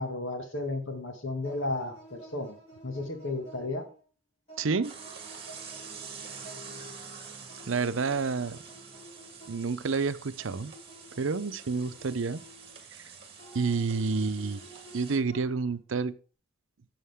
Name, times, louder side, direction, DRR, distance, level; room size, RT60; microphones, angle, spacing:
voice 1, 0.0-2.6 2.8-3.9, left 2 dB, 90° left, 5 dB, 2.1 m, -33 dB
sound 1, 1.4-4.0 4.5-6.9 7.5-10.0 10.4-12.8 13.4-15.8, right 1 dB, 30° left, 3.7 m, -52 dB
voice 2, 4.6-4.9 7.7-8.6 9.5-10.7 11.2-12.4 13.5-14.6 14.9-16.1, right 4 dB, 90° right, 14 dB, 0.6 m, -29 dB
sound 2, 4.8-15.2, right 5 dB, 25° right, 1.7 m, -46 dB
11.5 x 7.2 x 3.6 m, 0.37 s
head